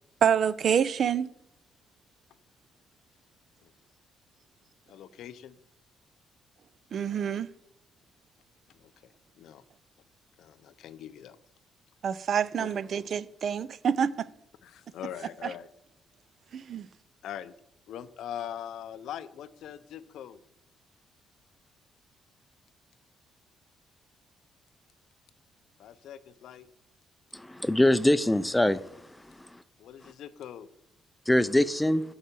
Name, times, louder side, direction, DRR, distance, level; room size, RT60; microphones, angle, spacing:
voice 1, 0.2-1.3 6.9-7.5 12.0-14.1 15.4-15.5 16.5-16.9, right 8 dB, 60° right, 0.4 m, -27 dB
voice 2, 4.9-5.5 8.8-8.9 9.4-9.6 10.4-11.4 12.6-12.7 14.6-15.7 17.2-17.5 17.9-20.4 25.8-26.7 29.8-30.7, left 10 dB, 80° left, 0.5 m, -42 dB
voice 3, 27.3-28.8 29.4-29.5 31.3-32.0, left 1 dB, 10° left, 0.4 m, -23 dB
8.6 x 4.8 x 6.8 m
cardioid pair, 90°, 0 cm